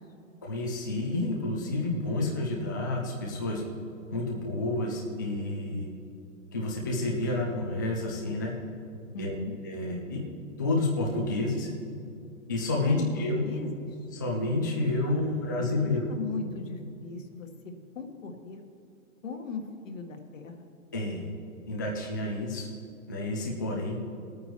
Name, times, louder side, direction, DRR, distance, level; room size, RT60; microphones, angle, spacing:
voice 1, 0.4-3.6 4.1-5.9 6.5-8.5 9.2-9.3 9.6-10.2 10.6-11.7 12.5-13.5 14.1-16.1 20.9-21.3 21.7-22.7 23.1-24.0, left 2 dB, 15° left, -3 dB, 0.3 m, -29 dB
voice 2, 9.1-9.6 12.8-13.1 13.4-14.0 15.1-18.6 19.2-20.7, left 4 dB, 70° left, 4 dB, 1.6 m, -39 dB
19.0 x 9.2 x 3.0 m, 2.6 s
hypercardioid pair, 155°, 41 cm